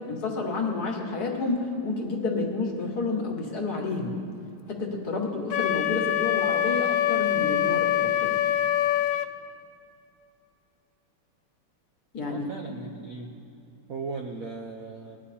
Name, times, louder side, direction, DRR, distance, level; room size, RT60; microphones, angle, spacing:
voice 1, 0.1-4.2 4.7-8.4 12.1-12.5, left 3 dB, 50° left, 0 dB, 1.8 m, -30 dB
Wind instrument woodwind instrument, 5.5-9.3, left 12 dB, 75° left, 1.1 m, -24 dB
voice 2, 12.3-13.3 13.9-15.2, right 4 dB, 60° right, 1 dB, 0.9 m, -37 dB
19.5 x 10.5 x 4.2 m, 2.7 s
omnidirectional pair, 2.3 m